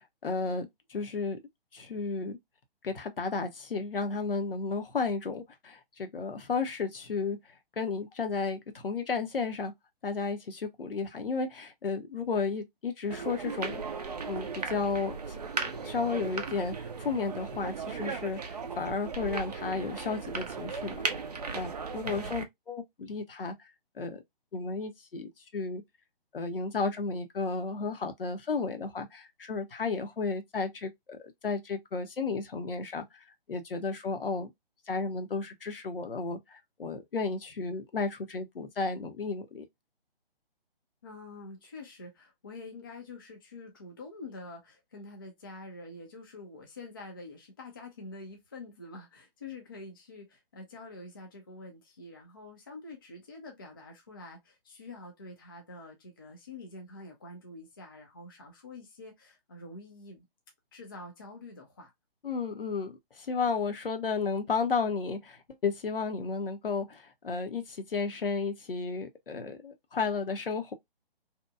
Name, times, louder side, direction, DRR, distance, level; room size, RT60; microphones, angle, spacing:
voice 1, 0.0-1.4 1.7-2.4 2.8-7.4 7.8-9.7 10.0-21.0 21.5-23.6 24.0-24.2 24.5-25.8 26.3-34.5 34.9-39.6 62.2-70.7, left 4 dB, 65° left, 0.7 m, -33 dB
sound 1, 13.1-22.4, right 5 dB, 45° right, 0.4 m, -36 dB
voice 2, 41.0-60.2 60.7-61.9, left 2 dB, 25° left, 0.4 m, -46 dB
2.8 x 2.1 x 2.2 m
figure-of-eight pair, 135°, 30 cm